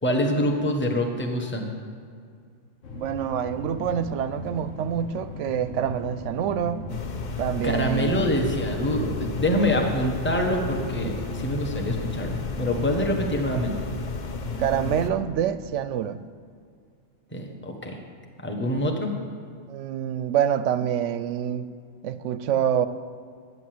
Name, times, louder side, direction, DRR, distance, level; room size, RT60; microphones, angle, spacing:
voice 1, 0.0-1.7 7.6-13.9 17.3-18.0 18.4-19.1, equal, 10° left, 2 dB, 1.2 m, -25 dB
sound 1, 2.8-13.6, left 2 dB, 75° left, 1.5 m, -39 dB
voice 2, 2.9-7.0 7.4-8.1 14.3-16.2 19.7-21.7 22.0-22.9, right 9 dB, 75° right, 13 dB, 0.9 m, -26 dB
sound 2, 6.9-15.1, left 4 dB, 40° left, 0.8 m, -33 dB
11.0 x 9.2 x 7.7 m, 2.2 s
omnidirectional pair, 1.3 m